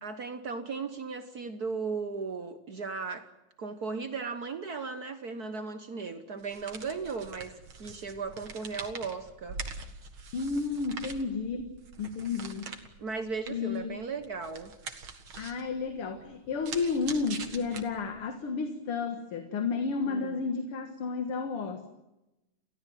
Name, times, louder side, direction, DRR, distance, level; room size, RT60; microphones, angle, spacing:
voice 1, 0.0-3.3 3.6-9.6 13.0-14.7 15.3-15.6 20.1-20.5, right 4 dB, 50° right, 1.5 m, -36 dB
sound 1, 6.4-18.3, right 5 dB, 70° right, 2.7 m, -44 dB
voice 2, 10.3-11.7 12.0-12.8 13.5-14.0 15.3-21.9, left 4 dB, 90° left, 2.5 m, -32 dB
29.5 x 16.0 x 9.1 m
omnidirectional pair, 2.4 m